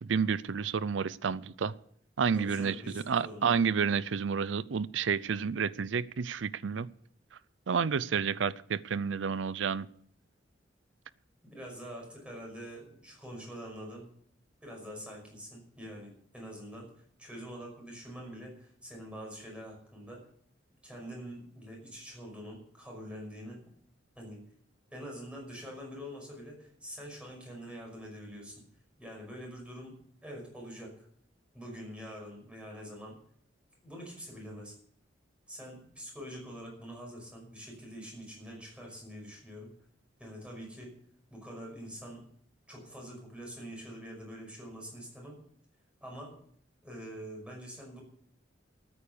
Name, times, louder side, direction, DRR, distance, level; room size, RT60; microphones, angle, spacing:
voice 1, 0.0-1.7 2.2-6.9 7.7-9.9, right 6 dB, 75° right, 19 dB, 0.5 m, -30 dB
voice 2, 2.3-3.7 11.4-14.1 14.6-16.9 17.2-20.3 20.8-23.6 24.2-24.4 24.9-28.6 29.0-31.1 31.5-33.2 33.8-34.7 35.5-39.7 40.2-40.9 41.3-42.2 42.7-45.4 46.0-46.3 46.8-48.0, equal, 5° right, -1 dB, 5.7 m, -45 dB
13.5 x 9.4 x 7.1 m, 0.62 s
head